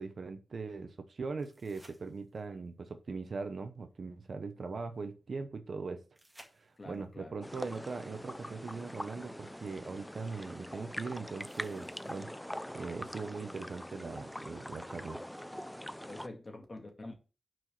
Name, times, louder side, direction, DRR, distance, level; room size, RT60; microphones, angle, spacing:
voice 1, 0.0-6.0 6.5-12.3 12.7-15.2, right 4 dB, 55° right, 0.9 m, -40 dB
sound 1, 1.4-2.7 6.1-7.1 9.0-9.1 11.4-12.5 15.4-15.5, right 1 dB, 10° right, 1.9 m, -60 dB
voice 2, 6.8-7.3 16.1-17.3, left 2 dB, 30° left, 2.0 m, -46 dB
sound 2, 7.4-16.3, equal, 5° left, 0.5 m, -43 dB
6.1 x 4.7 x 6.6 m
wide cardioid pair, 135°, 0 cm